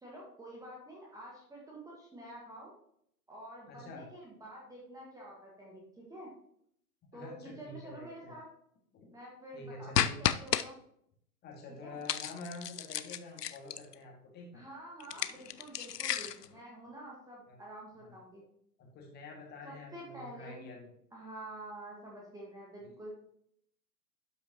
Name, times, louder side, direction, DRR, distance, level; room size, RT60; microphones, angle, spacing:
voice 1, 0.0-2.7 3.3-6.3 7.1-8.4 9.1-10.8 11.8-12.0 14.5-18.4 19.6-20.6 21.1-23.1, right 1 dB, 5° right, -3 dB, 1.6 m, -48 dB
voice 2, 3.7-4.1 7.1-8.3 8.9-9.1 9.5-10.2 11.4-14.6 17.5-17.6 18.0-18.1 18.8-20.9 22.8-22.9, left 2 dB, 20° left, -1 dB, 2.0 m, -47 dB
sound 1, 9.9-10.6 12.1-13.9 15.0-16.5, left 9 dB, 75° left, 0.6 m, -32 dB
12.0 x 5.8 x 2.9 m, 0.70 s
figure-of-eight pair, 105°, 48 cm